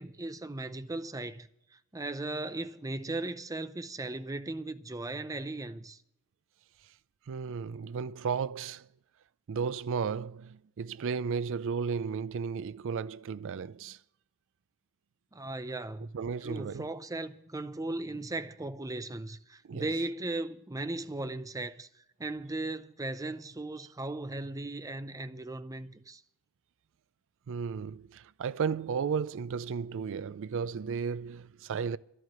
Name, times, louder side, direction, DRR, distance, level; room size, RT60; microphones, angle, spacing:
voice 1, 0.0-6.0 15.3-16.1 16.4-21.9 22.2-26.2, right 2 dB, 15° right, 0.6 m, -37 dB
voice 2, 7.3-8.9 9.5-14.0 16.1-16.9 19.7-19.9 27.5-32.0, right 6 dB, 60° right, 0.4 m, -34 dB
12.0 x 7.7 x 9.4 m
head